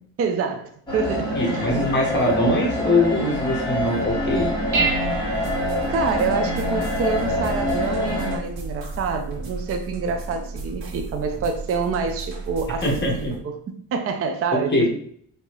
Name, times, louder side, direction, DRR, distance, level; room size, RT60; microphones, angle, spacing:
voice 1, 0.2-1.4 5.9-12.8 13.2-14.9, right 5 dB, 40° right, 5 dB, 0.5 m, -27 dB
sound 1, 0.9-8.4, left 1 dB, 10° left, 1.5 m, -26 dB
voice 2, 1.3-4.5 12.7-13.4 14.5-14.9, left 1 dB, 30° left, 0 dB, 1.3 m, -22 dB
Dishes pots and pans, 4.0-13.3, right 4 dB, 55° right, 1.4 m, -32 dB
sound 2, 5.3-13.4, right 2 dB, 80° right, 1.5 m, -41 dB
5.3 x 2.8 x 3.1 m, 0.63 s
cardioid pair, 120°, 37 cm